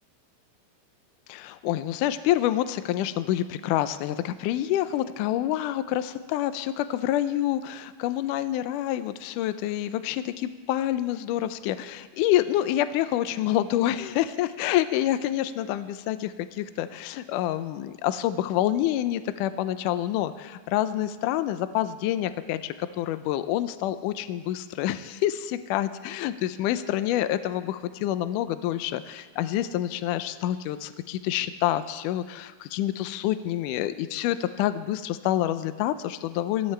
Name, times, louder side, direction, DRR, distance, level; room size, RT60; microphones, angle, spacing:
voice 1, 1.3-36.7, left 13 dB, 80° left, 11 dB, 2.0 m, -27 dB
25.5 x 16.0 x 3.4 m, 1.4 s
omnidirectional pair, 4.1 m